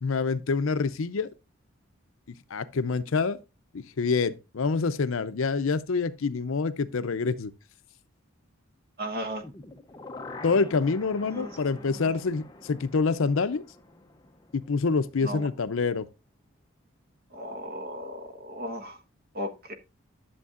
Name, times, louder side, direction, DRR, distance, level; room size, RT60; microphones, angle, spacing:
voice 1, 0.0-1.3 2.5-3.4 3.7-7.5 10.4-13.6 14.5-16.1, left 4 dB, 65° left, 0.5 m, -26 dB
voice 2, 9.0-9.4 11.2-12.1 15.2-15.5 17.3-19.0 19.3-19.7, equal, 45° right, 1.2 m, -36 dB
sound 1, 9.4-15.4 15.7-15.8, left 2 dB, 20° left, 0.6 m, -46 dB
11.0 x 7.2 x 2.4 m
head